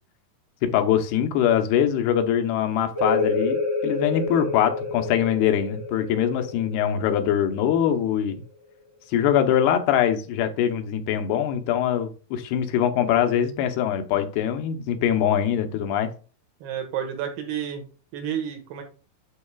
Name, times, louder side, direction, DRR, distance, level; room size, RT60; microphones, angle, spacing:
voice 1, 0.6-8.4 9.1-16.1, left 9 dB, 90° left, 7 dB, 2.9 m, -23 dB
sound 1, 2.9-8.3, left 3 dB, 65° right, 5.4 m, -29 dB
voice 2, 16.6-17.8 18.1-18.8, right 9 dB, 85° right, 4 dB, 3.5 m, -30 dB
12.0 x 4.7 x 2.3 m, 0.36 s
omnidirectional pair, 4.5 m